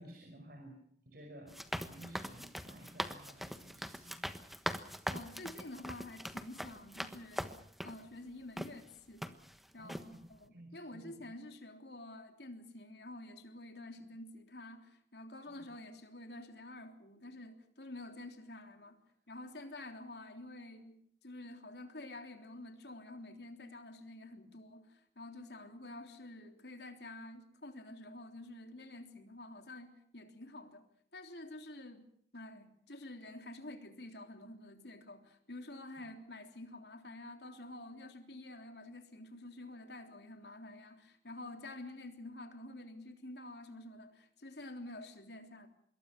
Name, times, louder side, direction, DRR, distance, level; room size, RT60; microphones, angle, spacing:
voice 1, 0.0-4.2 9.7-11.3 15.5-15.7, right 1 dB, 55° right, 4 dB, 5.3 m, -54 dB
sound 1, 1.5-8.0 8.6-8.7 9.2-9.6 9.9-10.1, equal, ahead, 1.3 m, -41 dB
voice 2, 5.1-7.6 7.8-9.4 9.7-10.0 10.3-19.0 19.3-30.8 31.1-32.1 32.3-45.7, left 1 dB, 70° left, 6 dB, 3.4 m, -49 dB
26.0 x 22.5 x 5.9 m, 0.66 s
head